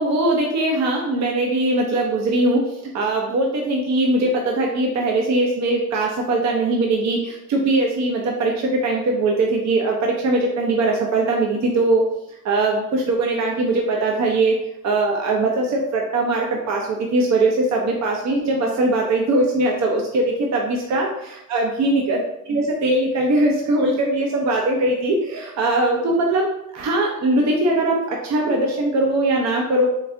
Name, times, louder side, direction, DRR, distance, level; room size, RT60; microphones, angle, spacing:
voice 1, 0.0-12.2 12.4-26.5 26.7-29.9, right 2 dB, 60° right, 0 dB, 0.8 m, -21 dB
4.1 x 2.6 x 3.3 m, 0.81 s
cardioid pair, 90°, 30 cm